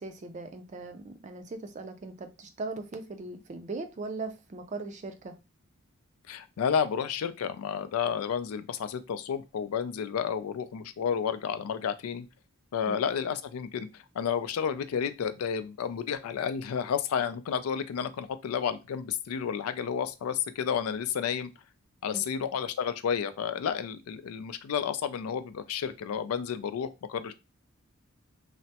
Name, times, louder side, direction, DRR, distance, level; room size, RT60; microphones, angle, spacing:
voice 1, 0.0-5.4 12.9-13.0 22.1-22.2, right 3 dB, 35° right, 8 dB, 0.4 m, -39 dB
voice 2, 6.3-12.3 12.7-21.5 22.0-27.3, left 7 dB, 90° left, 12 dB, 0.3 m, -31 dB
3.3 x 2.0 x 2.7 m, 0.26 s
head